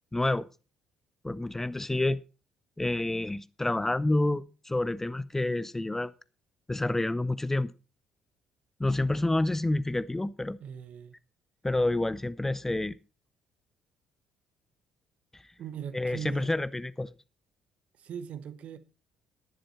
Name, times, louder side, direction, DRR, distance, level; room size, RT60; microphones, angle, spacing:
voice 1, 0.1-0.5 1.2-2.2 2.8-6.1 6.7-7.7 8.8-10.6 11.6-13.0 15.9-17.1, left 2 dB, 10° left, 0.5 m, -28 dB
voice 2, 10.6-11.2 15.6-16.6 17.9-18.8, right 8 dB, 50° right, 1.0 m, -40 dB
11.5 x 10.5 x 4.3 m
figure-of-eight pair, 50°, 3 cm